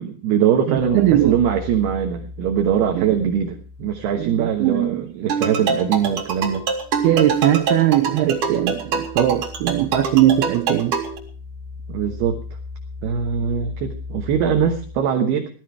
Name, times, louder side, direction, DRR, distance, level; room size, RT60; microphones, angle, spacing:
voice 1, 0.0-6.7 11.9-12.4 13.0-15.5, right 8 dB, 70° right, 2.7 m, -22 dB
voice 2, 0.7-1.3 2.9-3.0 4.2-5.1 7.0-11.0, right 13 dB, 85° right, 2.2 m, -19 dB
sound 1, 0.8-5.1 5.4-15.0, left 4 dB, 25° left, 1.0 m, -38 dB
sound 2, 5.3-11.2, right 5 dB, 50° right, 3.3 m, -24 dB
16.5 x 13.5 x 4.6 m
omnidirectional pair, 5.8 m